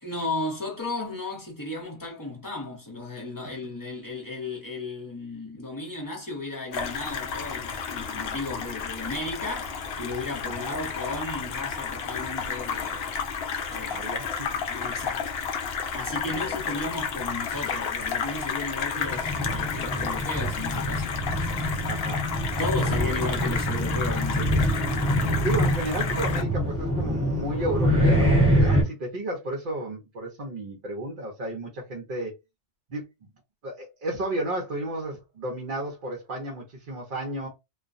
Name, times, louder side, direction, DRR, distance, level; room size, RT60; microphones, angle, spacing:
voice 1, 0.0-13.1 13.7-14.0 14.7-15.4 15.9-21.2 22.6-24.8, left 2 dB, 20° left, 0.9 m, -34 dB
sound 1, 6.7-26.4, left 6 dB, 65° left, 0.8 m, -32 dB
voice 2, 13.9-14.6 16.3-16.9 21.9-22.3 25.4-32.3 32.9-33.1 33.6-37.5, right 1 dB, 50° right, 0.8 m, -33 dB
sound 2, 18.9-28.8, equal, 10° right, 1.0 m, -25 dB
2.4 x 2.1 x 2.5 m
omnidirectional pair, 1.2 m